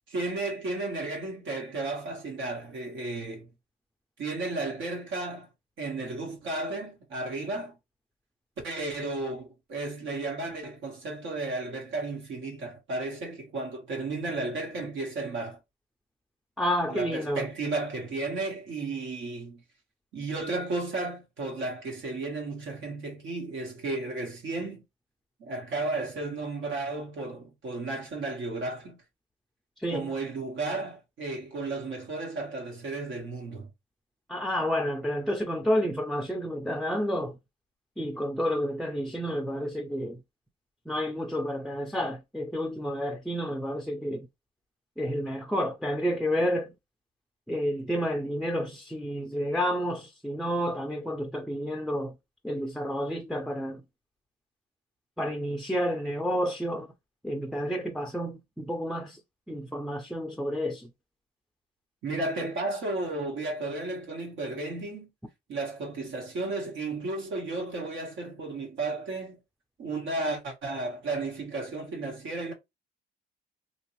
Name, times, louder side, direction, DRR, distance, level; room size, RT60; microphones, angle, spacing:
voice 1, 0.1-3.5 4.2-5.5 5.8-7.8 8.6-15.6 16.9-19.6 20.1-24.8 25.4-29.0 29.9-33.7 62.0-65.1 65.5-69.4 69.8-72.5, right 2 dB, 75° right, 1.4 m, -33 dB
voice 2, 16.6-17.5 29.8-30.1 34.3-37.4 38.0-40.2 40.9-44.3 45.0-46.7 47.5-52.1 52.4-53.8 55.2-56.9 57.2-59.2 59.5-60.9, equal, ahead, 0.4 m, -30 dB
2.9 x 2.5 x 3.0 m
cardioid pair, 90°, 20 cm